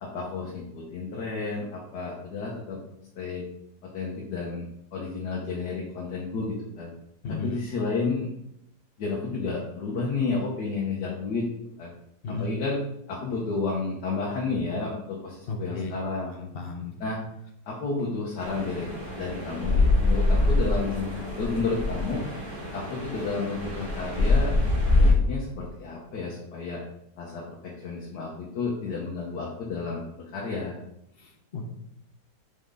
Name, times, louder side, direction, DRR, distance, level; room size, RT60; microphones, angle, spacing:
voice 1, 0.0-2.8 3.2-3.4 3.9-4.6 4.9-6.9 7.4-8.3 9.0-11.4 11.8-11.9 12.4-12.8 13.1-16.3 17.0-17.2 17.7-18.9 19.2-22.2 22.7-24.6 24.9-26.8 27.2-30.7, left 4 dB, 80° left, -3 dB, 1.6 m, -31 dB
voice 2, 15.5-15.9 16.3-16.9 31.2-31.7, left 3 dB, 55° left, 3 dB, 0.7 m, -34 dB
sound 1, 18.4-25.1, left 2 dB, 30° right, 2.2 m, -25 dB
5.6 x 4.5 x 3.8 m, 0.77 s
omnidirectional pair, 1.8 m